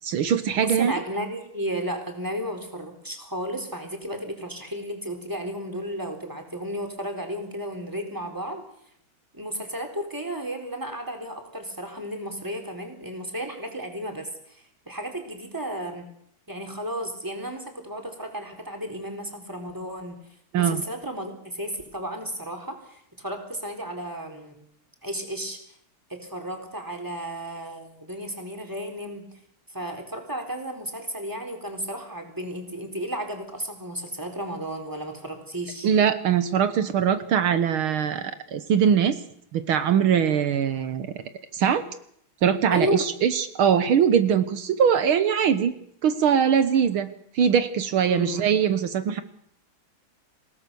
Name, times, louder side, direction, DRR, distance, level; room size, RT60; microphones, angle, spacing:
voice 1, 0.0-0.9 20.5-20.8 35.8-39.2 39.5-41.1 41.5-41.8 42.4-45.7 46.0-47.1 47.3-49.2, right 8 dB, 75° right, 11 dB, 1.9 m, -22 dB
voice 2, 0.6-8.6 9.3-16.1 16.5-20.2 20.5-24.6 25.0-25.6 26.1-29.2 29.7-35.9 42.7-43.0 48.1-48.5, right 1 dB, 10° right, 3 dB, 4.0 m, -33 dB
28.0 x 18.0 x 7.0 m, 0.71 s
omnidirectional pair, 2.3 m